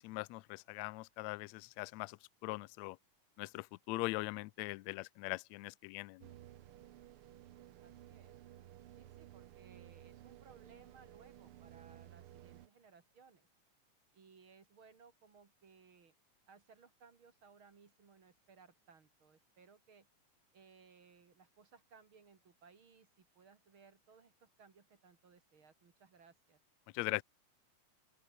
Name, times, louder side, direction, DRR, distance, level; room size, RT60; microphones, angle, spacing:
voice 1, 0.0-2.2 2.4-3.0 3.4-6.3 26.9-27.2, left 23 dB, 85° left, 1.6 m, -41 dB
sound 1, 6.2-12.7, right 13 dB, 85° right, 1.2 m, -56 dB
voice 2, 7.8-8.4 9.0-13.5 14.1-16.2 16.5-20.1 20.5-26.6, right 5 dB, 40° right, 2.8 m, -63 dB
open air
omnidirectional pair, 3.7 m